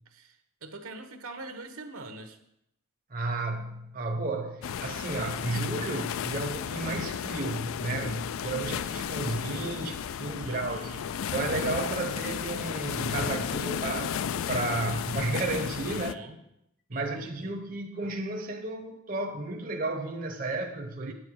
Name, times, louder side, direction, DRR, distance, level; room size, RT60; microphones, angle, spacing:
voice 1, 0.1-2.4 10.4-11.1 15.9-16.4 16.9-17.5, right 2 dB, 70° right, 7 dB, 1.1 m, -44 dB
voice 2, 3.1-10.9 11.3-14.1 14.5-16.2 16.9-21.1, right 2 dB, 40° right, 2 dB, 0.8 m, -33 dB
sound 1, 4.6-16.1, left 8 dB, 65° left, 0.3 m, -33 dB
9.4 x 8.9 x 4.8 m, 0.81 s
head